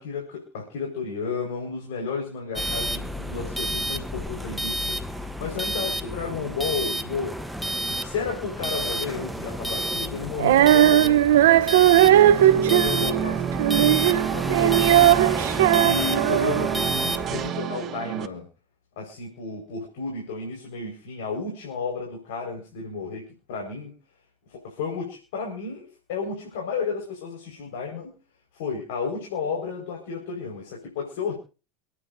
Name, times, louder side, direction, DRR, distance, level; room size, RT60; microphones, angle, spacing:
voice 1, 0.0-7.4 7.8-11.9 12.2-15.4 15.8-18.5 19.0-23.9 24.5-28.1 28.6-31.3, left 5 dB, 75° left, 0 dB, 4.9 m, -32 dB
sound 1, 2.6-17.5, right 1 dB, ahead, 1.0 m, -30 dB
Female singing, 10.4-16.8, right 13 dB, 80° right, 0.8 m, -18 dB
sound 2, 11.8-18.3, right 8 dB, 40° right, 1.2 m, -29 dB
28.5 x 9.7 x 2.7 m, 0.35 s
hypercardioid pair, 100°, 0 cm